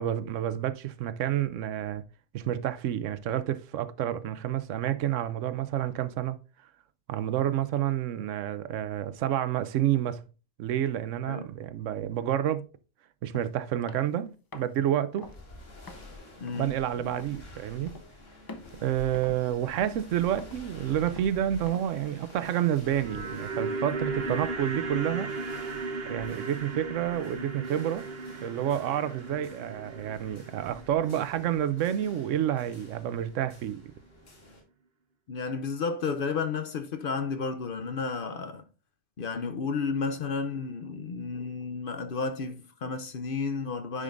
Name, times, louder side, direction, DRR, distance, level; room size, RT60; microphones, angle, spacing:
voice 1, 0.0-2.0 2.3-6.4 7.1-10.2 10.6-12.7 13.2-14.3 14.5-15.3 16.6-18.0 18.8-25.3 26.1-28.1 28.4-33.8, right 11 dB, 80° right, 0.9 m, -29 dB
sound 1, 13.3-13.5 13.9-14.2 14.5-14.8 15.2-15.4 15.9-16.1 16.5-16.7 17.2-17.4 17.9-18.1 18.5-18.8 19.1-19.5 19.8-20.1 20.4-20.7 21.1-21.3 21.7-21.9, left 2 dB, 35° left, 0.3 m, -46 dB
sound 2, 15.2-34.6, left 2 dB, 80° left, 2.2 m, -50 dB
voice 2, 16.4-17.1 19.3-19.4 35.3-38.6 39.2-44.0, left 5 dB, 55° left, 0.7 m, -32 dB
sound 3, 22.7-32.9 33.2-33.3, right 3 dB, 55° right, 1.3 m, -37 dB
9.8 x 5.2 x 2.5 m
omnidirectional pair, 1.3 m